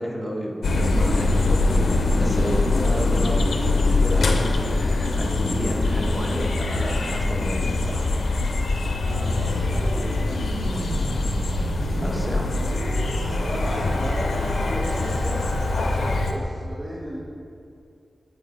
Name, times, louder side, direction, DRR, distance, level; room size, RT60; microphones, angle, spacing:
voice 1, 0.0-3.3 3.8-8.1 11.9-12.5, equal, ahead, -3 dB, 1.3 m, -31 dB
sound 1, 0.6-16.3, left 2 dB, 90° left, 0.5 m, -23 dB
voice 2, 2.7-3.4 9.0-9.3 13.3-17.2, equal, 35° right, -9 dB, 1.7 m, -33 dB
Organ, 9.0-16.4, right 2 dB, 70° right, 0.6 m, -34 dB
8.5 x 4.6 x 3.9 m, 2.5 s
wide cardioid pair, 65°, 0 cm